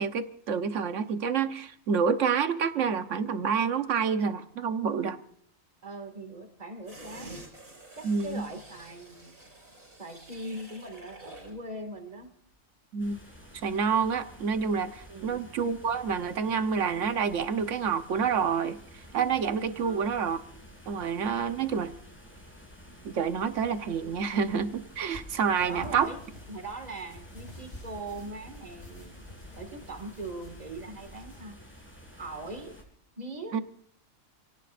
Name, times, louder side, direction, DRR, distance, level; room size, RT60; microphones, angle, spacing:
voice 1, 0.0-5.2 8.0-8.4 12.9-13.2 13.6-20.4 20.9-21.9 23.0-26.1 33.5-33.6, right 6 dB, 65° right, 9 dB, 1.3 m, -28 dB
voice 2, 5.8-7.5 8.0-9.4 10.0-12.3 15.1-15.5 19.8-20.3 25.5-26.2 26.5-29.3 29.6-31.6 32.2-32.9 33.2-33.6, right 2 dB, 30° right, 5 dB, 2.2 m, -41 dB
sound 1, 6.9-11.6 12.0-12.1, right 1 dB, 85° right, 6.0 m, -48 dB
sound 2, 13.0-32.8, equal, 10° left, 3.7 m, -51 dB
sound 3, 24.9-31.4, left 1 dB, 50° left, 3.8 m, -49 dB
28.5 x 18.5 x 2.5 m, 0.63 s
omnidirectional pair, 1.4 m